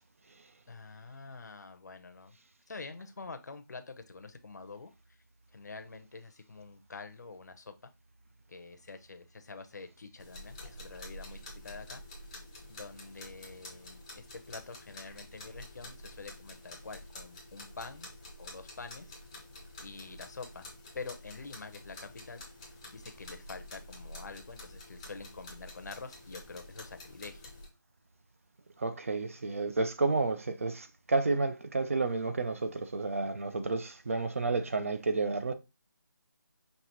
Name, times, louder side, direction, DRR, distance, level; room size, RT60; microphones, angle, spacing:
voice 1, 0.7-2.3 2.7-4.9 5.5-7.7 8.5-12.0 12.7-18.1 18.4-19.2 19.8-20.7 20.9-22.4 22.9-27.4, left 4 dB, 55° left, 0.7 m, -46 dB
sound 1, 10.2-27.7, left 1 dB, 15° left, 0.6 m, -49 dB
voice 2, 28.8-35.5, right 3 dB, 40° right, 0.5 m, -31 dB
5.4 x 2.8 x 2.9 m
figure-of-eight pair, 175°, 11 cm